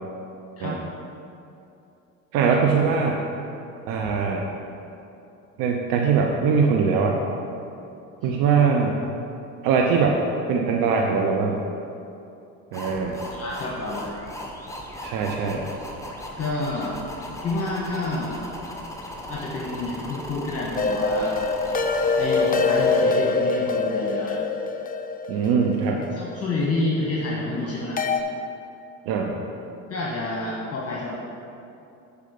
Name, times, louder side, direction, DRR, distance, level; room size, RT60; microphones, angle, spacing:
voice 1, 2.3-3.2 3.9-4.5 5.6-7.2 8.2-9.0 9.6-10.2 10.5-11.6 12.7-13.2 15.0-15.7 25.3-26.0 29.1-29.4, right 5 dB, 65° right, 1 dB, 0.8 m, -22 dB
sound 1, 12.7-23.0, left 1 dB, 10° left, 1.3 m, -37 dB
voice 2, 13.3-14.2 16.4-17.0 17.4-18.4 19.3-21.3 22.2-24.4 26.1-28.0 29.9-31.2, left 2 dB, 40° left, -4 dB, 1.5 m, -29 dB
sound 2, 20.8-26.8 28.0-28.2, left 4 dB, 25° left, 0.6 m, -24 dB
6.6 x 4.9 x 6.7 m, 2.7 s
hypercardioid pair, 75°, 37 cm